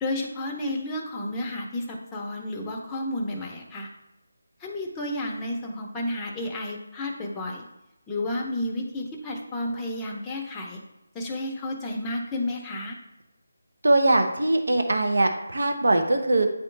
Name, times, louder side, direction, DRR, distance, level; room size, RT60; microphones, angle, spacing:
voice 1, 0.0-3.9 4.6-7.7 8.1-10.8 11.1-13.0, left 1 dB, 10° left, -1 dB, 0.7 m, -31 dB
voice 2, 13.8-16.5, right 2 dB, 75° right, 4 dB, 0.9 m, -21 dB
9.4 x 3.1 x 3.2 m, 0.92 s
figure-of-eight pair, 165°, 0 cm